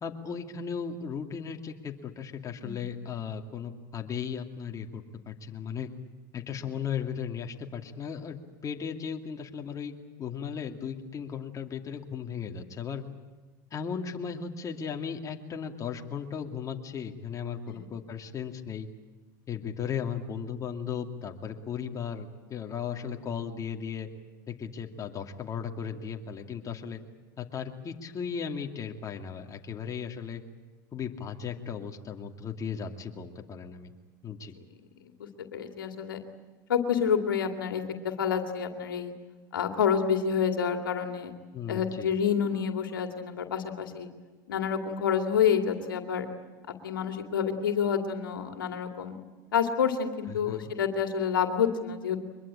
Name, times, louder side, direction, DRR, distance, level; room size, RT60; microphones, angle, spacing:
voice 1, 0.0-5.9 6.3-8.4 8.6-9.9 10.2-13.0 13.7-18.9 19.5-24.1 24.5-27.0 27.4-30.4 30.9-33.9 34.2-34.5 41.5-42.1 50.3-50.7, left 7 dB, 30° left, 3 dB, 2.4 m, -36 dB
voice 2, 35.2-36.2 36.7-39.1 39.5-41.3 41.7-44.1 44.5-46.3 46.8-49.2 49.5-52.2, left 7 dB, 90° left, 5 dB, 2.3 m, -28 dB
23.5 x 22.0 x 8.9 m, 1.2 s
hypercardioid pair, 95°, 11 cm